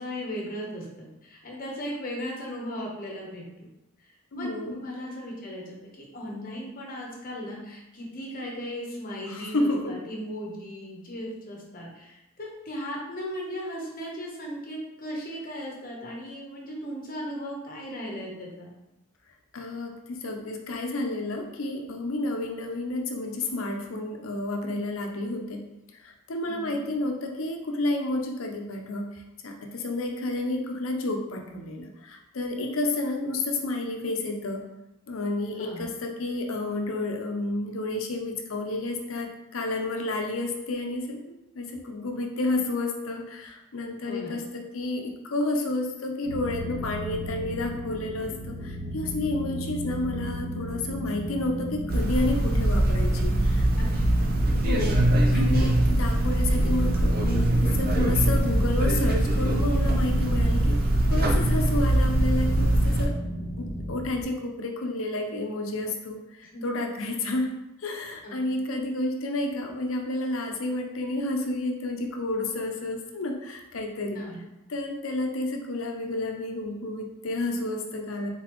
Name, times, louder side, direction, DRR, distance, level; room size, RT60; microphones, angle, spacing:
voice 1, 0.0-3.4 4.3-18.7 26.5-26.8 35.6-35.9 44.0-44.4 53.8-54.4 66.4-66.6 68.2-68.4 74.1-74.4, equal, 45° left, -2 dB, 1.0 m, -37 dB
voice 2, 4.3-4.8 9.3-10.0 19.5-25.6 26.0-34.6 35.1-53.7 54.5-60.8 61.1-63.1 63.6-74.2 74.7-78.3, left 2 dB, 80° left, 3 dB, 0.7 m, -30 dB
sound 1, 46.2-64.2, equal, 25° right, 1.5 m, -34 dB
sound 2, 51.9-63.1, right 1 dB, 45° right, 0.6 m, -22 dB
4.0 x 3.9 x 3.0 m, 0.95 s
head